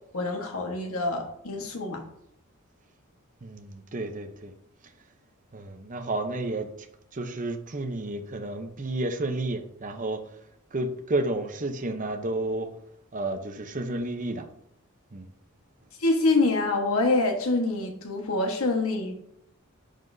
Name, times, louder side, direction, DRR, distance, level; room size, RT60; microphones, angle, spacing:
voice 1, 0.1-2.0 16.0-19.1, left 2 dB, 75° left, 3 dB, 1.3 m, -25 dB
voice 2, 3.4-4.5 5.5-6.9 7.1-10.2 10.7-12.7 13.1-14.5 15.1-15.3, right 2 dB, 35° right, 6 dB, 0.7 m, -31 dB
10.0 x 5.7 x 2.7 m, 0.77 s
head